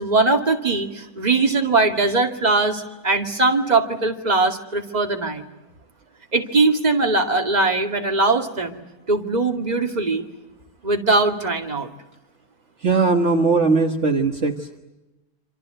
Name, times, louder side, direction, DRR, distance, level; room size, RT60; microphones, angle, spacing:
voice 1, 0.0-5.4 6.3-8.8 9.1-10.3 10.8-11.9, right 3 dB, 25° right, 4 dB, 2.4 m, -20 dB
voice 2, 12.8-14.7, right 4 dB, 50° right, 4 dB, 1.8 m, -19 dB
27.0 x 27.0 x 7.9 m, 1.0 s
omnidirectional pair, 1.6 m